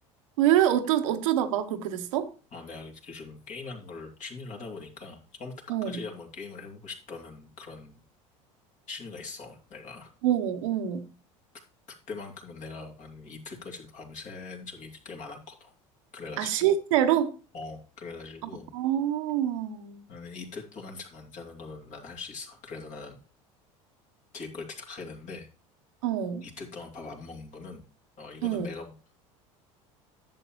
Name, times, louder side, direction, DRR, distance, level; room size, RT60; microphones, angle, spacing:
voice 1, 0.4-2.3 5.7-6.0 10.2-11.0 16.4-17.3 18.4-20.0 26.0-26.4 28.4-28.7, right 11 dB, 75° right, 1.0 m, -26 dB
voice 2, 2.5-5.5 5.8-8.0 8.9-10.1 12.1-15.7 16.1-16.7 17.5-18.7 20.1-23.2 24.3-25.5 26.4-27.8 28.2-28.9, left 4 dB, 45° left, 2.7 m, -42 dB
10.5 x 7.5 x 3.1 m
hypercardioid pair, 80°, 17 cm